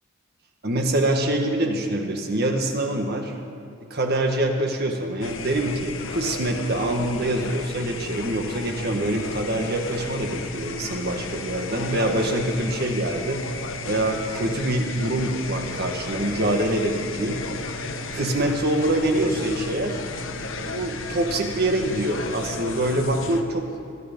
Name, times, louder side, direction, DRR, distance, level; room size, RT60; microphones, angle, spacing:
voice 1, 0.6-3.3 3.9-13.4 13.9-17.4 18.1-20.0 20.6-23.7, right 1 dB, 50° right, 3 dB, 1.7 m, -25 dB
sound 1, 5.2-23.4, left 2 dB, 70° left, 1.0 m, -33 dB
21.0 x 12.5 x 5.3 m, 2.4 s
head